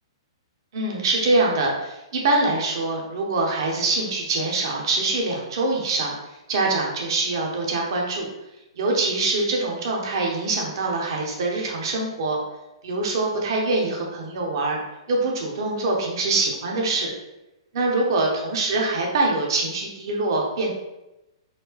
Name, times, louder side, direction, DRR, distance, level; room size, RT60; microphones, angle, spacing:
voice 1, 0.7-6.1 6.5-8.3 8.8-12.4 12.8-14.8 15.1-17.1 17.7-20.7, right 2 dB, 60° right, 0 dB, 1.0 m, -24 dB
4.2 x 2.2 x 3.3 m, 0.95 s
hypercardioid pair, 120°, 3 cm